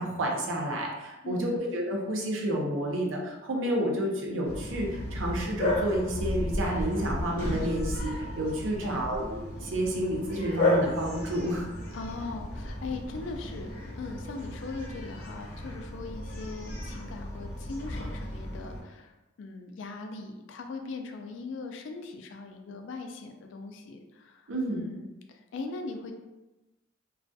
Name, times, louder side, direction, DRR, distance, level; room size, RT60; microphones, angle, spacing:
voice 1, 0.0-8.1 8.4-11.7 24.5-24.8, right 1 dB, 70° right, -1 dB, 0.5 m, -30 dB
Bark, 4.4-18.8, left 1 dB, 40° left, 0.7 m, -33 dB
voice 2, 8.6-9.1 11.9-26.1, left 3 dB, 65° left, 5 dB, 0.3 m, -40 dB
2.3 x 2.2 x 2.6 m, 1.1 s
head